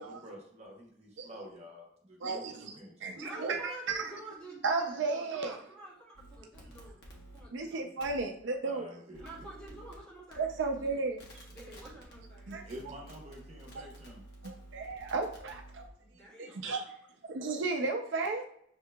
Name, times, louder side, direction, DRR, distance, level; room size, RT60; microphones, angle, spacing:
voice 1, 0.0-2.9 8.6-9.5 12.6-14.2, equal, 35° right, -2 dB, 1.0 m, -48 dB
voice 2, 2.2-4.1 4.6-5.6 7.5-8.9 10.4-11.2 12.5-12.6 13.7-13.8 14.4-15.8 16.4-16.8 17.3-18.4, right 3 dB, 75° right, 3 dB, 0.5 m, -34 dB
voice 3, 3.1-7.9 9.2-11.0 11.4-12.8 16.0-16.9, right 2 dB, 5° left, -8 dB, 1.5 m, -49 dB
sound 1, 6.1-7.4 8.0-8.2 9.1-9.9 10.3-10.9 11.2-15.9, right 1 dB, 60° left, 1.0 m, -51 dB
6.5 x 2.8 x 2.2 m, 0.67 s
head